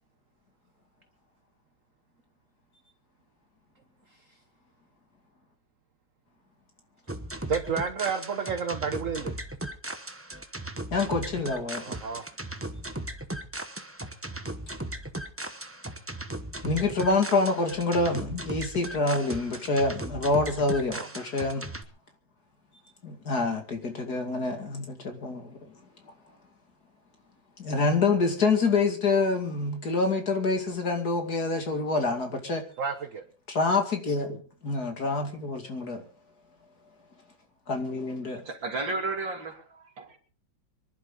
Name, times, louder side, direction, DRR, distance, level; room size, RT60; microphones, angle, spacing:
sound 1, 7.1-21.8, right 1 dB, 10° right, 0.7 m, -37 dB
voice 1, 7.5-9.4 11.8-12.2 20.9-21.1 32.8-33.2, right 6 dB, 45° right, 1.3 m, -30 dB
voice 2, 10.9-12.0 16.6-21.6 23.0-25.7 27.6-32.6 33.5-34.4 34.6-36.0 37.7-38.4, left 3 dB, 50° left, 2.9 m, -27 dB
voice 3, 38.2-40.2, right 3 dB, 70° right, 3.6 m, -33 dB
25.5 x 11.5 x 3.9 m
omnidirectional pair, 2.1 m